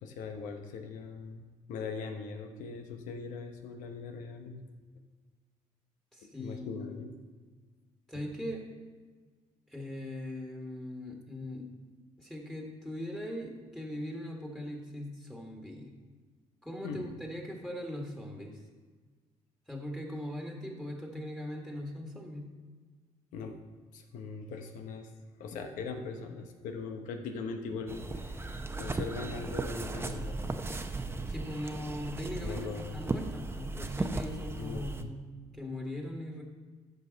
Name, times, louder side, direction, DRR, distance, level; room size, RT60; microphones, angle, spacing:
voice 1, 0.0-4.6 6.2-7.2 8.1-8.3 16.8-17.2 23.3-23.6 23.9-25.1 25.4-30.5 32.4-33.2 34.6-35.1, left 4 dB, 90° left, 5 dB, 1.0 m, -41 dB
voice 2, 6.1-7.0 8.1-8.7 9.7-11.7 12.2-15.9 16.6-18.6 19.7-22.5 31.3-36.4, left 1 dB, 5° left, 0 dB, 1.7 m, -40 dB
sound 1, 27.9-35.0, right 2 dB, 20° right, 0.8 m, -36 dB
14.0 x 5.3 x 4.0 m, 1.4 s
cardioid pair, 85°, 13 cm